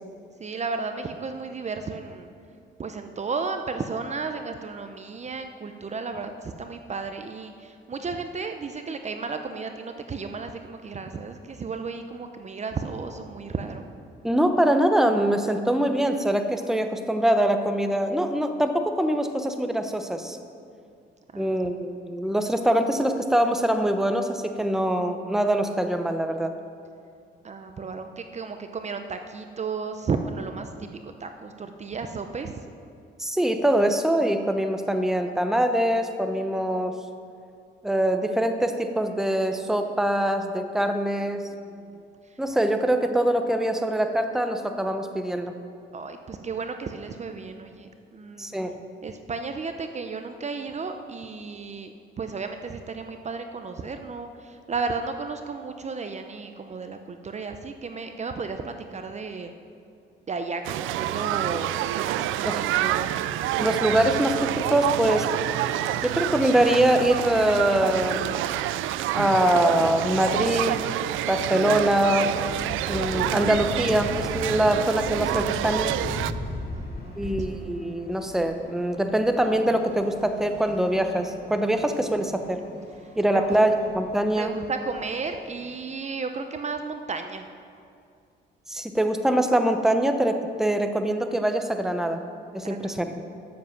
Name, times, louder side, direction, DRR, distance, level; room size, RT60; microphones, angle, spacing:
voice 1, 0.4-2.3 2.8-13.8 21.3-21.7 27.4-32.5 41.4-42.0 45.9-48.5 49.0-59.5 60.3-63.1 76.7-77.5 83.0-83.6 84.4-87.5 92.6-93.1, right 4 dB, 35° right, 7 dB, 0.7 m, -34 dB
voice 2, 14.2-20.4 21.3-26.5 33.2-36.9 37.8-41.4 42.4-45.5 48.4-48.7 62.4-62.6 63.6-65.3 66.0-68.3 69.1-70.8 71.3-72.3 72.9-75.9 77.2-82.6 83.2-84.5 88.7-92.2 92.5-93.2, right 1 dB, ahead, 6 dB, 0.9 m, -23 dB
sound 1, 60.6-76.3, right 13 dB, 90° right, 0.4 m, -28 dB
sound 2, 72.4-85.7, left 1 dB, 50° left, 2.4 m, -39 dB
13.0 x 7.5 x 5.8 m, 2.4 s
cardioid pair, 90°, 20 cm